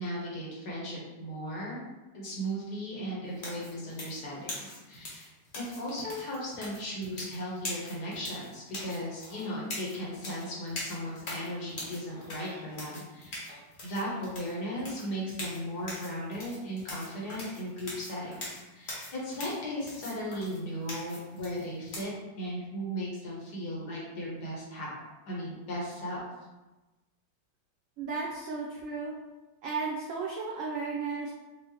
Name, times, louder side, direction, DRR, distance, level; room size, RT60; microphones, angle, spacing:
voice 1, 0.0-1.8 2.1-13.4 13.8-22.1 22.4-24.9 25.3-26.3, equal, 65° left, -5 dB, 1.5 m, -36 dB
sound 1, 3.4-22.0, left 1 dB, 45° left, 1.0 m, -42 dB
sound 2, 9.0-9.6 10.4-10.6 11.8-12.7 13.5-13.7, equal, 45° right, 1.2 m, -54 dB
voice 2, 28.0-29.1 29.6-31.3, right 4 dB, 80° right, -3 dB, 0.7 m, -34 dB
4.7 x 2.0 x 2.9 m, 1.1 s
omnidirectional pair, 1.9 m